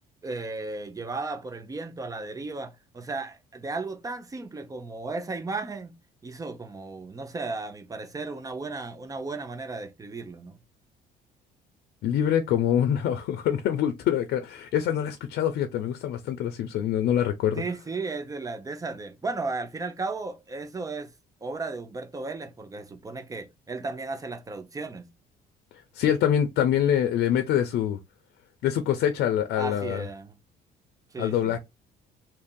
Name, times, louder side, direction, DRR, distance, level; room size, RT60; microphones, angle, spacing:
voice 1, 0.2-6.0 6.2-10.6 17.5-21.1 21.4-25.1 29.6-30.4 31.1-31.5, right 3 dB, 20° right, 0.7 m, -35 dB
voice 2, 12.0-17.6 25.9-28.0 28.6-30.0 31.2-31.6, left 10 dB, 75° left, 0.7 m, -25 dB
2.8 x 2.7 x 3.7 m
cardioid pair, 110°, 17 cm